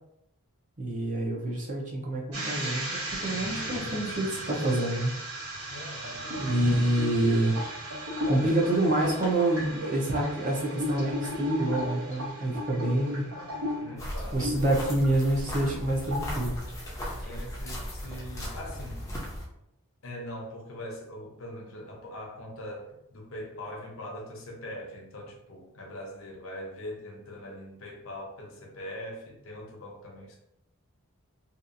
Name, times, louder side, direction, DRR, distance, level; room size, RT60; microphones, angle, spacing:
voice 1, 0.8-5.1 5.6-5.8 6.4-7.6 8.3-13.2 14.3-16.6, right 1 dB, 35° right, -1 dB, 0.6 m, -27 dB
sound 1, 2.3-15.1 15.5-15.8 16.1-16.4, equal, 80° right, 1.2 m, -35 dB
voice 2, 5.7-6.5 13.2-14.5 17.2-19.1 20.0-30.4, left 1 dB, 65° left, -1 dB, 0.7 m, -42 dB
sound 2, 14.0-19.5, equal, 15° left, 0.5 m, -37 dB
2.7 x 2.3 x 2.5 m, 0.79 s
head